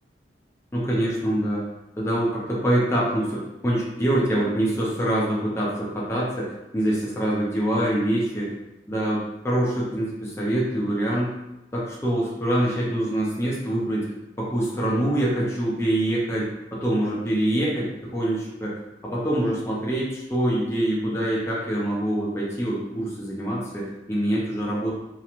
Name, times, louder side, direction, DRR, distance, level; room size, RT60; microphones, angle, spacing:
voice 1, 0.7-1.7 2.0-6.4 6.7-8.5 8.9-11.3 11.7-14.1 14.4-18.8 19.0-24.9, right 1 dB, 15° left, -5 dB, 0.5 m, -25 dB
3.0 x 2.1 x 2.4 m, 0.96 s
head